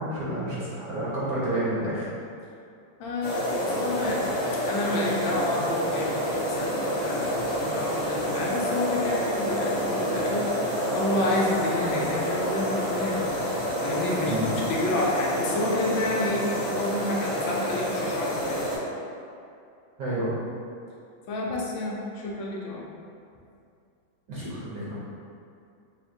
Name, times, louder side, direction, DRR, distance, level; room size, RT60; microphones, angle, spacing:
voice 1, 0.0-2.1 14.2-14.5 20.0-20.4 24.3-25.0, right 1 dB, 60° right, -8 dB, 1.1 m, -29 dB
voice 2, 3.0-4.4 4.6-13.2 13.8-18.7 21.3-22.8, left 1 dB, 75° left, -3 dB, 1.4 m, -29 dB
sound 1, 3.2-18.8, equal, 30° left, 1.6 m, -28 dB
5.6 x 2.5 x 2.7 m, 2.5 s
omnidirectional pair, 2.2 m